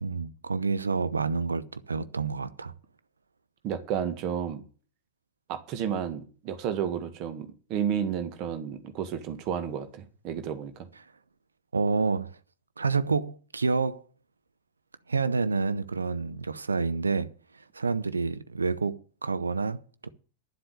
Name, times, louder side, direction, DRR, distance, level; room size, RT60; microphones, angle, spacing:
voice 1, 0.0-2.7 11.7-12.4 12.8-14.0 15.1-17.3 17.7-20.1, right 4 dB, 75° right, 0.8 m, -28 dB
voice 2, 3.6-4.6 5.5-10.9, right 8 dB, 40° right, 1.8 m, -32 dB
11.0 x 7.8 x 8.0 m
figure-of-eight pair, 90°, 0 cm